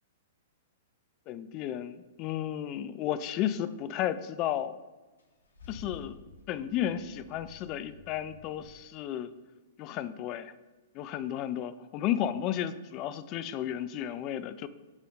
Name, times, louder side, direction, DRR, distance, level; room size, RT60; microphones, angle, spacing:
voice 1, 1.3-4.8 5.7-9.3 9.8-10.5 10.9-14.7, left 11 dB, 40° left, 14 dB, 0.3 m, -33 dB
Car / Engine starting / Idling, 5.2-8.7, left 4 dB, 75° left, 1.2 m, -51 dB
4.8 x 4.2 x 5.0 m, 1.2 s
hypercardioid pair, 115°, 0 cm